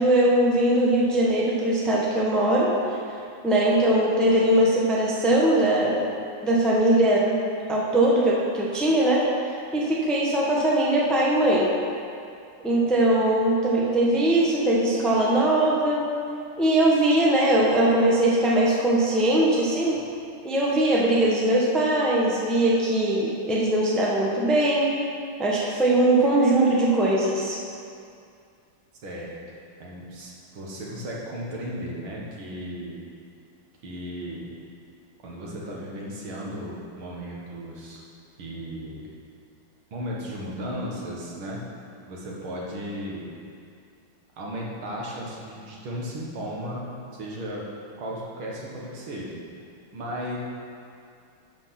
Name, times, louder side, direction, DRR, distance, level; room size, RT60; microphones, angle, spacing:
voice 1, 0.0-2.7 3.4-6.0 6.4-7.2 7.7-9.2 9.7-11.7 12.6-16.1 16.6-20.0 20.4-24.9 25.4-27.6, right 1 dB, ahead, -5 dB, 0.9 m, -21 dB
voice 2, 29.0-29.3 29.8-33.0 33.8-34.5 35.2-38.0 38.4-39.1 39.9-41.6 42.1-43.3 44.4-46.9 47.1-47.7 48.0-49.4 49.9-50.4, equal, 80° right, -4 dB, 2.4 m, -35 dB
11.5 x 5.1 x 5.8 m, 2.4 s
omnidirectional pair, 2.3 m